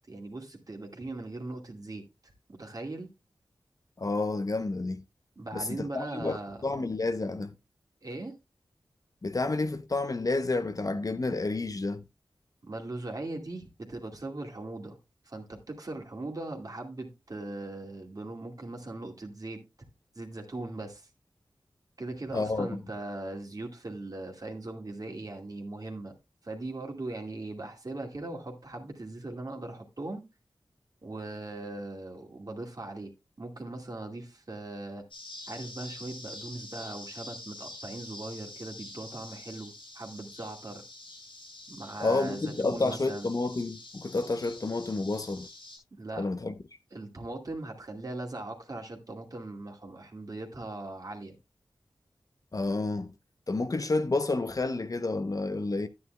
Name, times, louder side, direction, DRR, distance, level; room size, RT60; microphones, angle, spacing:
voice 1, 0.1-3.1 5.4-6.6 8.0-8.3 12.6-15.0 15.3-19.6 20.2-21.1 22.0-26.1 26.4-30.2 31.0-33.1 33.4-35.0 35.5-40.8 41.7-43.3 46.0-46.3 46.9-51.4, right 2 dB, 45° right, 2.3 m, -39 dB
voice 2, 4.0-5.0 5.5-7.6 9.2-12.0 22.3-22.8 42.0-45.5 46.2-46.5 52.5-53.1 53.5-55.9, left 3 dB, 45° left, 0.7 m, -30 dB
sound 1, 35.1-45.8, left 2 dB, 90° left, 4.4 m, -46 dB
11.5 x 9.5 x 2.3 m
cardioid pair, 45°, 8 cm